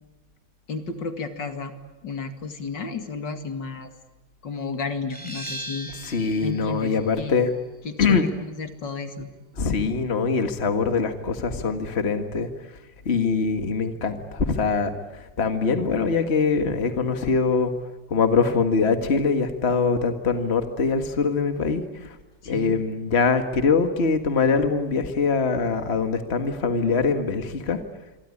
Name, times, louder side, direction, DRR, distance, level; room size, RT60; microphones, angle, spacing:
voice 1, 0.7-1.7 2.0-3.9 4.4-5.9 6.4-7.4 7.8-9.3 22.4-22.7, left 4 dB, 75° left, 7 dB, 2.8 m, -32 dB
sound 1, 5.1-10.5, right 1 dB, 5° left, 3.8 m, -41 dB
voice 2, 6.0-7.5 8.0-8.3 9.6-12.5 13.1-17.7 18.1-22.2 22.5-27.8, left 4 dB, 35° left, 7 dB, 1.9 m, -23 dB
27.0 x 24.0 x 8.6 m, 1.1 s
omnidirectional pair, 2.0 m